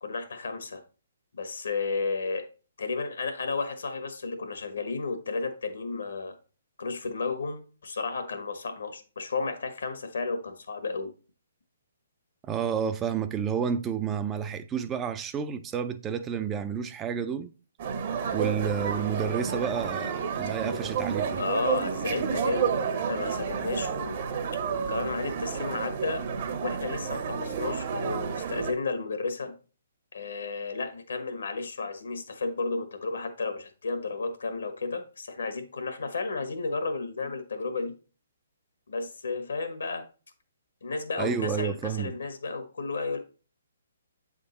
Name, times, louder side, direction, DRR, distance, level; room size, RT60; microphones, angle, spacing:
voice 1, 0.0-0.8 1.3-2.4 2.8-6.4 6.8-11.1 20.6-20.8 21.4-24.2 24.6-26.2 26.6-29.5 30.1-37.9 38.9-40.0 40.8-43.2, left 4 dB, 80° left, 1.3 m, -33 dB
voice 2, 12.5-17.5 18.3-21.4 41.2-42.1, right 7 dB, 15° right, 0.4 m, -30 dB
sound 1, 17.8-28.7, right 6 dB, 45° right, 0.9 m, -31 dB
7.7 x 3.7 x 3.9 m
hypercardioid pair, 145°, 0 cm